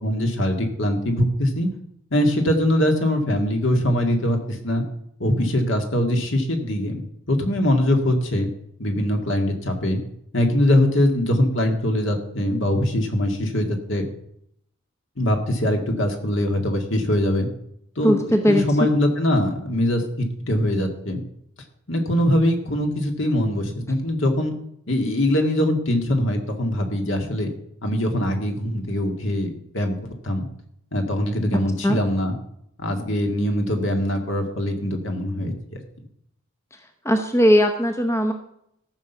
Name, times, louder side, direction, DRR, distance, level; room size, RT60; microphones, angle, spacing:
voice 1, 0.0-1.7 2.1-4.8 5.2-8.5 8.8-10.0 10.3-14.1 15.2-17.5 18.0-21.2 21.9-24.5 24.9-27.5 27.8-30.0 30.2-30.5 30.9-32.3 32.8-35.8, left 1 dB, 60° left, 4 dB, 2.0 m, -22 dB
voice 2, 18.0-18.6 31.8-32.0 37.0-38.3, equal, 15° left, 5 dB, 0.8 m, -18 dB
14.0 x 6.0 x 6.9 m, 0.74 s
head